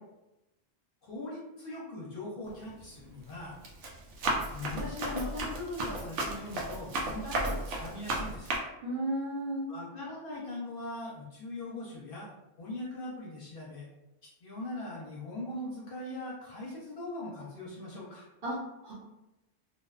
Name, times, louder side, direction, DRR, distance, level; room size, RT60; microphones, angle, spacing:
voice 1, 1.0-3.6 4.5-8.5 9.7-12.3 12.6-13.9 14.2-18.2, left 2 dB, 55° left, -5 dB, 0.7 m, -40 dB
Run, 2.5-2.8 3.3-8.6, right 2 dB, 80° right, 0.9 m, -34 dB
voice 2, 8.8-9.7 18.4-18.9, right 1 dB, 55° right, -8 dB, 0.9 m, -34 dB
2.4 x 2.2 x 2.3 m, 0.94 s
omnidirectional pair, 1.2 m